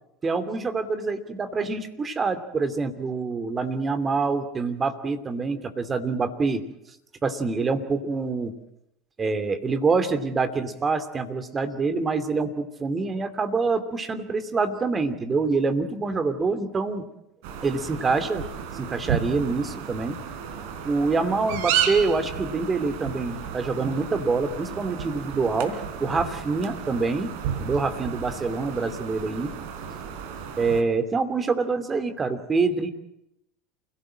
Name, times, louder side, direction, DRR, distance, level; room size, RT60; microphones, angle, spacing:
voice 1, 0.2-6.6 7.2-8.5 9.2-17.1 17.6-18.5 18.7-20.2 20.8-27.3 27.6-29.5 30.6-32.9, right 4 dB, 25° right, 10 dB, 2.8 m, -26 dB
sound 1, 17.4-30.8, right 8 dB, 65° right, 3.6 m, -33 dB
28.5 x 17.5 x 7.6 m, 0.83 s
hypercardioid pair, 80°, 0 cm